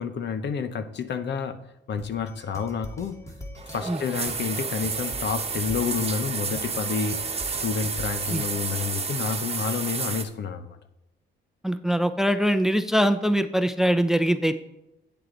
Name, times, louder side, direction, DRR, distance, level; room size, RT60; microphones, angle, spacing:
voice 1, 0.0-1.6 1.9-3.2 3.7-7.2 7.6-10.8, left 6 dB, 65° left, 10 dB, 1.0 m, -29 dB
sound 1, 2.0-8.8, equal, 15° left, 1.7 m, -43 dB
sound 2, 3.6-10.2, right 5 dB, 30° right, 1.3 m, -31 dB
voice 2, 11.6-14.6, equal, ahead, 11 dB, 0.6 m, -22 dB
9.0 x 7.7 x 4.0 m, 0.90 s
cardioid pair, 90°, 20 cm